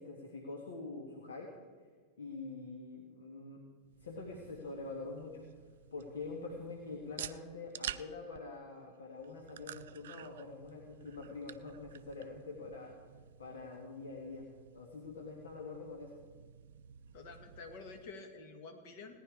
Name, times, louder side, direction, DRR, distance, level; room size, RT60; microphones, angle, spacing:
voice 1, 0.0-1.5 2.2-3.6 4.0-5.5 5.9-12.9 13.4-14.5 14.7-16.1, left 3 dB, 65° left, 1 dB, 1.6 m, -45 dB
sound 1, 3.8-18.1, right 10 dB, 60° right, 0.4 m, -51 dB
voice 2, 17.1-19.2, left 4 dB, 50° left, 5 dB, 1.8 m, -49 dB
17.5 x 10.5 x 4.8 m, 1.5 s
figure-of-eight pair, 90°, 0 cm